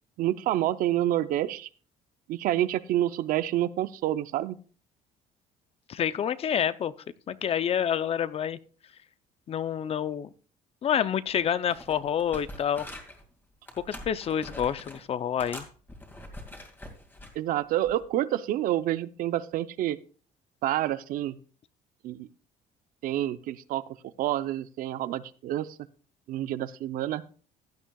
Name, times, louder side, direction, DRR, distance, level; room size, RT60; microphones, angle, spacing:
voice 1, 0.2-1.7 2.3-4.6 17.3-20.0 20.6-21.4 22.0-22.3 23.0-23.8 24.2-25.8 26.3-27.2, right 13 dB, 70° right, 14 dB, 0.7 m, -28 dB
voice 2, 5.9-6.9 7.3-8.6 9.5-10.3 10.8-12.9 13.9-15.7, left 9 dB, 40° left, 15 dB, 0.6 m, -28 dB
sound 1, 11.3-11.4 11.7-13.2 13.7-15.0 15.4-17.4 17.8-18.1, left 1 dB, 15° left, 2.2 m, -44 dB
15.5 x 10.0 x 2.3 m, 0.40 s
cardioid pair, 115°, 15 cm